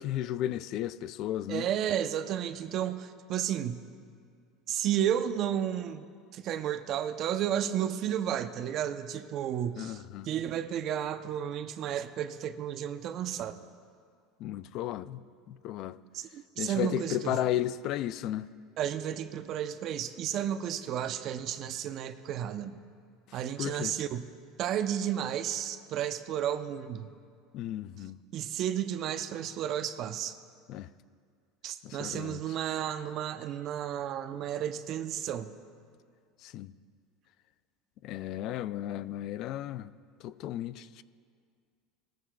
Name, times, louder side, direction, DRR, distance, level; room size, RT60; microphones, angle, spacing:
voice 1, 0.0-1.7 9.8-10.3 14.4-15.2 15.5-16.0 16.6-18.5 23.6-23.9 27.5-28.2 30.7-30.9 31.8-32.4 36.4-36.7 38.0-39.9 40.2-41.0, left 12 dB, 55° left, 0.3 m, -34 dB
voice 2, 1.5-3.8 4.7-6.1 6.3-13.6 16.1-17.4 18.8-22.8 23.3-24.3 24.6-27.1 28.3-30.4 31.6-35.5, right 10 dB, 50° right, 0.6 m, -32 dB
19.0 x 14.5 x 2.3 m
supercardioid pair, 110°, 0 cm